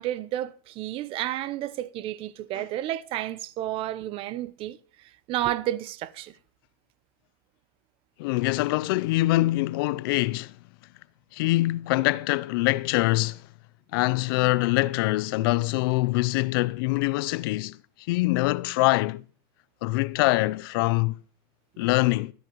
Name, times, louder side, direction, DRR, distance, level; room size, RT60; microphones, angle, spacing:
voice 1, 0.0-4.8 5.3-6.3, right 13 dB, 45° right, 0.8 m, -31 dB
voice 2, 8.2-10.5 11.3-13.4 13.9-17.8 18.1-19.2 19.8-21.2 21.8-22.3, left 20 dB, 70° left, 0.5 m, -24 dB
24.5 x 10.0 x 3.1 m
supercardioid pair, 115°, 12 cm